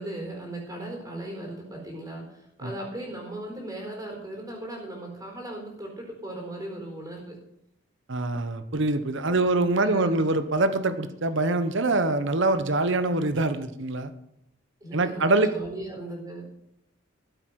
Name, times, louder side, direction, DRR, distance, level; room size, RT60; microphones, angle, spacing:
voice 1, 0.0-7.4 9.2-10.2 14.8-16.5, right 1 dB, 20° right, 0 dB, 4.3 m, -37 dB
voice 2, 8.1-14.1 14.9-15.5, right 2 dB, 65° right, 11 dB, 1.0 m, -24 dB
14.0 x 8.1 x 6.4 m, 0.77 s
head